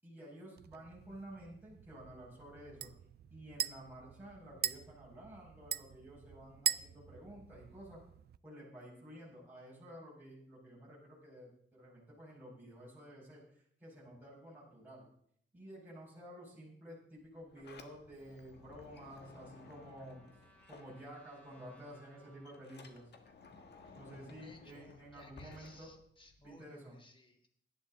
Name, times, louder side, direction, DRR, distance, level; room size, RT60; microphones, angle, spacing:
voice 1, 0.0-2.9 3.3-8.0 8.4-15.0 15.5-20.2 20.7-23.1 23.9-25.9 26.4-27.0, equal, 10° right, -6 dB, 5.1 m, -52 dB
sound 1, 0.6-8.4, right 9 dB, 55° right, 0.5 m, -42 dB
Sliding door, 17.2-21.5 21.8-26.6, left 4 dB, 60° left, 1.6 m, -57 dB
Trumpet, 18.4-23.1, right 2 dB, 10° left, 3.9 m, -68 dB
voice 2, 24.4-27.5, left 2 dB, 25° left, 4 dB, 2.0 m, -61 dB
17.5 x 11.5 x 3.6 m, 0.66 s
wide cardioid pair, 140°, 19 cm